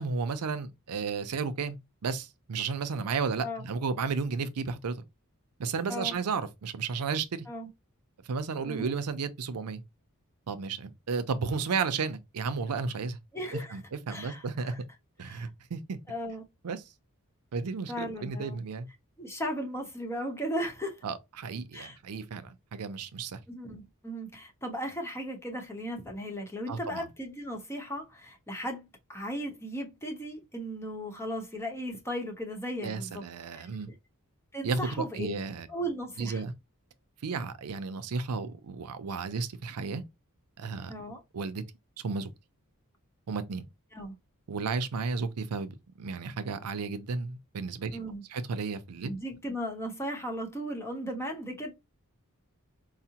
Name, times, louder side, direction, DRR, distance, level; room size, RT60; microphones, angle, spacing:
voice 1, 0.0-5.0 5.6-7.5 8.2-9.8 10.5-14.7 15.2-16.0 16.6-16.8 17.5-18.9 21.0-23.4 26.7-27.1 32.8-33.9 34.6-35.7 36.2-36.5 37.2-40.0 40.6-40.9 41.3-41.6 42.0-42.3 43.3-43.6 44.5-48.0 48.3-49.1, right 5 dB, 90° right, 0.5 m, -33 dB
voice 2, 13.3-13.8 14.1-14.8 15.2-15.5 16.1-16.4 17.9-18.6 19.2-21.0 21.7-22.0 23.5-33.2 33.5-33.7 34.5-35.3 35.7-36.4 40.9-41.2 43.9-44.2 47.9-48.2 49.0-51.7, equal, 10° left, 0.8 m, -36 dB
4.7 x 2.0 x 2.8 m
head